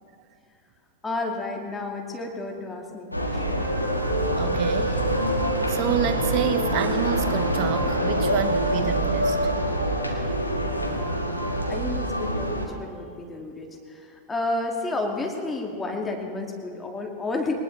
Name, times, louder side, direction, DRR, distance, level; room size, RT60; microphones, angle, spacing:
voice 1, 1.0-3.7 11.7-17.6, left 2 dB, 10° left, 1 dB, 2.2 m, -31 dB
sound 1, 3.1-12.7, right 1 dB, 90° left, 1.6 m, -25 dB
voice 2, 4.4-5.0 5.7-9.4, right 9 dB, 40° right, 10 dB, 1.0 m, -28 dB
22.0 x 19.5 x 3.3 m, 2.4 s
figure-of-eight pair, 90°, 0 cm